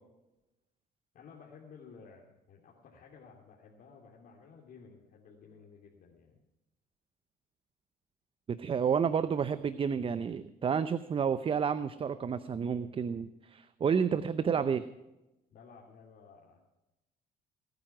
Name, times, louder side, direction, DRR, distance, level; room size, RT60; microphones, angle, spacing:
voice 1, 1.1-6.4 15.5-16.6, left 5 dB, 55° left, -2 dB, 2.9 m, -54 dB
voice 2, 8.5-14.9, right 7 dB, 30° right, 13 dB, 0.7 m, -30 dB
19.5 x 9.2 x 5.9 m, 0.97 s
cardioid pair, 110°, 17 cm